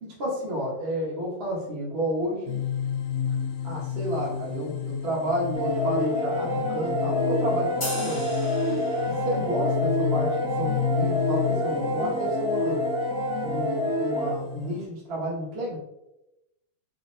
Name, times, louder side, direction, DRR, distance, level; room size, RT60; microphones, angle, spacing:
voice 1, 0.0-2.6 3.6-8.2 8.7-12.8 13.4-15.8, equal, 85° right, -6 dB, 0.5 m, -31 dB
sound 1, 2.5-14.8, left 8 dB, 70° left, 1.8 m, -31 dB
sound 2, 5.5-14.3, equal, 55° right, 1.1 m, -27 dB
sound 3, 7.8-9.4, left 1 dB, 45° left, 0.7 m, -36 dB
5.4 x 2.1 x 2.7 m, 0.89 s
omnidirectional pair, 3.4 m